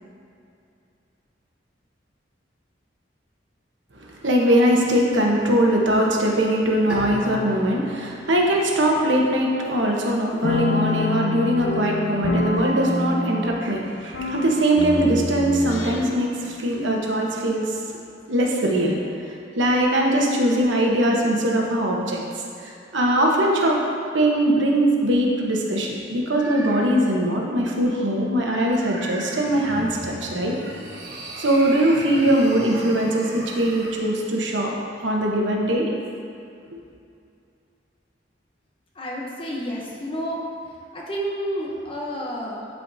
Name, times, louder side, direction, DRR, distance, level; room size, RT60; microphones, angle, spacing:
voice 1, 4.2-18.0 18.3-19.0 19.6-22.2 22.6-23.8 24.1-30.7 31.4-34.7 35.0-35.9, right 1 dB, 80° right, -1 dB, 1.0 m, -21 dB
Bowed string instrument, 6.9-10.1, right 1 dB, 5° right, 1.7 m, -38 dB
sound 1, 10.4-16.3, left 2 dB, 80° left, 0.6 m, -27 dB
sound 2, 29.3-34.0, right 1 dB, 60° right, 1.2 m, -37 dB
voice 2, 38.9-40.4 40.9-42.7, equal, 30° left, -3 dB, 0.8 m, -30 dB
11.5 x 4.6 x 2.7 m, 2.5 s
head